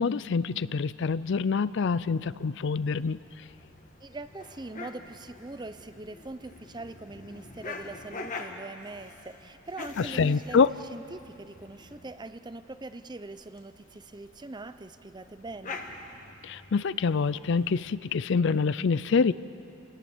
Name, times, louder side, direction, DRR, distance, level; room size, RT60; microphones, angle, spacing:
voice 1, 0.0-3.2 10.1-10.7 16.4-19.3, left 5 dB, 65° left, 17 dB, 0.5 m, -26 dB
sound 1, 1.9-18.0, left 3 dB, 40° left, 1.6 m, -46 dB
voice 2, 4.0-10.6 10.9-15.8, right 2 dB, 20° right, 12 dB, 0.6 m, -42 dB
28.5 x 18.5 x 7.2 m, 2.7 s
head